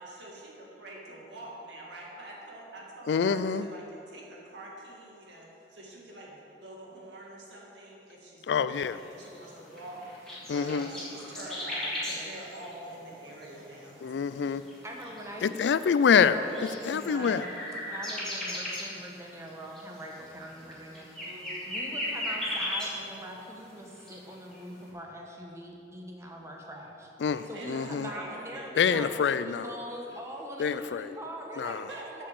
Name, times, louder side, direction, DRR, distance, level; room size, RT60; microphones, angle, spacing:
voice 1, 0.0-14.0 15.0-15.1 21.8-22.1 27.3-28.7 31.9-32.0, right 1 dB, 85° right, -3 dB, 2.1 m, -45 dB
voice 2, 3.1-3.7 8.5-9.0 10.5-10.9 14.0-14.6 15.4-16.4 16.9-17.4 27.2-28.1 28.8-29.7 30.6-31.1 31.6-31.8, left 6 dB, 75° left, 14 dB, 0.3 m, -26 dB
sound 1, 8.8-23.4 23.7-24.6, left 1 dB, 5° left, 2.4 m, -38 dB
voice 3, 14.8-15.6 16.2-17.5 17.9-21.2 21.7-27.1 27.4-32.3, equal, 15° right, 0 dB, 1.1 m, -42 dB
7.6 x 7.2 x 6.8 m, 2.9 s
head